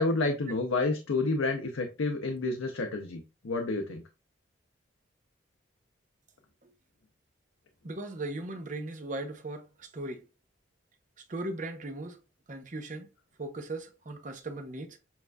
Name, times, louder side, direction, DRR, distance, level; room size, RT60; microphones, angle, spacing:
voice 1, 0.0-4.0, left 3 dB, 85° left, 0.6 m, -29 dB
voice 2, 7.8-10.2 11.3-12.2 12.5-13.1 13.4-15.0, right 2 dB, 40° right, 0.7 m, -38 dB
7.1 x 2.5 x 2.2 m
head